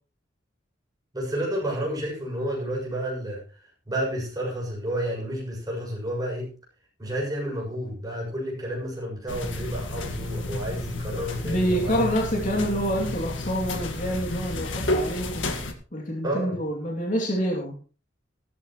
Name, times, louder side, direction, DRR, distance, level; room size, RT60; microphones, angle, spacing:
voice 1, 1.1-3.4 3.9-6.5 7.0-12.0 16.2-16.6, right 1 dB, 20° right, -3 dB, 6.9 m, -30 dB
sound 1, 9.3-15.7, left 1 dB, 85° left, 1.8 m, -31 dB
voice 2, 11.4-15.5 15.9-17.8, equal, 45° left, -1 dB, 2.7 m, -27 dB
15.0 x 13.0 x 3.1 m, 0.35 s
head